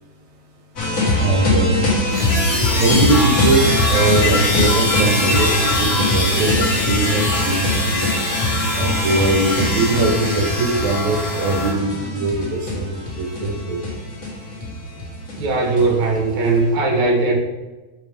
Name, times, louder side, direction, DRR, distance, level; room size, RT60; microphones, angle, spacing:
sound 1, 0.8-16.6, left 1 dB, 50° left, 1.0 m, -23 dB
voice 1, 1.2-1.8 2.8-8.1 8.8-13.8, right 2 dB, 75° right, 0 dB, 2.0 m, -21 dB
sound 2, 2.1-11.7, left 1 dB, 80° left, 3.5 m, -23 dB
voice 2, 15.3-17.4, right 3 dB, 50° right, 0 dB, 1.8 m, -18 dB
7.1 x 4.4 x 3.4 m, 1.2 s
omnidirectional pair, 3.3 m